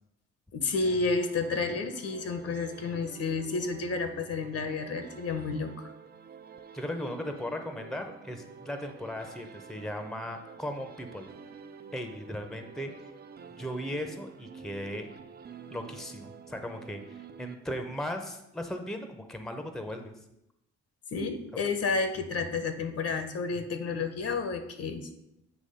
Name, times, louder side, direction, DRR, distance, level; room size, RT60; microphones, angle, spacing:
voice 1, 0.5-5.9 21.1-25.1, left 4 dB, 50° left, 8 dB, 0.9 m, -31 dB
sound 1, 0.8-18.1, right 6 dB, 35° right, 0.5 m, -49 dB
voice 2, 6.7-11.3 11.9-12.9 13.6-15.1 15.7-20.1, equal, ahead, 6 dB, 0.7 m, -37 dB
8.3 x 2.9 x 5.5 m, 0.84 s
cardioid pair, 90°, 30 cm